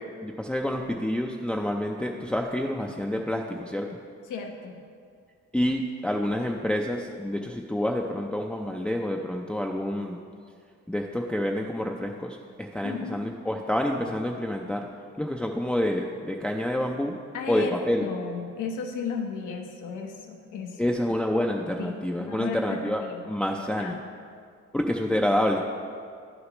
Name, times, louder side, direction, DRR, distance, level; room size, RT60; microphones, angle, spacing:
voice 1, 0.2-4.0 5.5-10.2 10.9-14.9 15.2-17.2 17.5-18.1 20.8-24.0 24.7-25.6, left 1 dB, 5° left, 1 dB, 0.4 m, -28 dB
voice 2, 4.3-4.8 12.8-13.2 17.3-20.9 21.8-23.2 23.5-24.0, left 5 dB, 85° left, 3 dB, 1.0 m, -35 dB
11.0 x 6.5 x 3.0 m, 2.2 s
cardioid pair, 90°, 30 cm